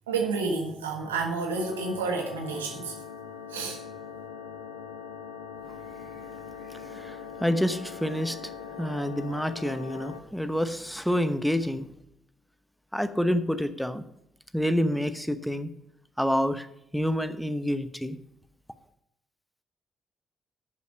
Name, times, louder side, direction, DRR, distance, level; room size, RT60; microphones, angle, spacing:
voice 1, 0.1-2.9 3.5-3.8, right 4 dB, 90° right, 3 dB, 1.4 m, -30 dB
sound 1, 1.5-10.2, left 7 dB, 80° left, 1.0 m, -41 dB
voice 2, 6.7-8.5 8.8-11.9 12.9-14.0 14.5-15.7 16.2-16.7 16.9-18.2, equal, ahead, 10 dB, 1.0 m, -28 dB
9.3 x 7.0 x 6.5 m, 0.79 s
hypercardioid pair, 45°, 0 cm